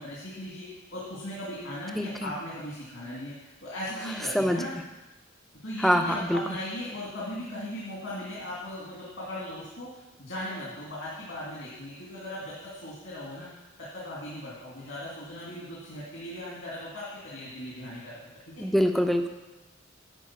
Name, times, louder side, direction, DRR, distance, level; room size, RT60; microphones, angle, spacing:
voice 1, 0.0-4.7 5.6-9.9 10.2-13.6 13.9-18.2, left 1 dB, 70° left, -7 dB, 2.5 m, -38 dB
voice 2, 1.9-2.3 4.3-4.6 5.8-6.4 18.6-19.3, equal, ahead, 5 dB, 0.6 m, -24 dB
10.5 x 4.9 x 7.3 m, 1.1 s
head